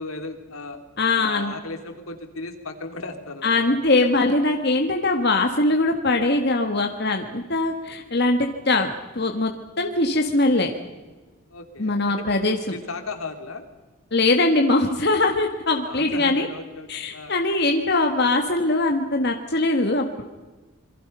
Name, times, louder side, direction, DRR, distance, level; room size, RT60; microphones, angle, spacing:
voice 1, 0.0-0.8 1.1-3.7 11.5-13.6 15.8-17.4, left 3 dB, 80° left, 6 dB, 3.0 m, -36 dB
voice 2, 1.0-1.5 3.4-10.7 11.8-12.6 14.1-16.5 16.9-20.2, left 2 dB, 50° left, 3 dB, 1.7 m, -21 dB
27.5 x 22.5 x 5.6 m, 1.2 s
head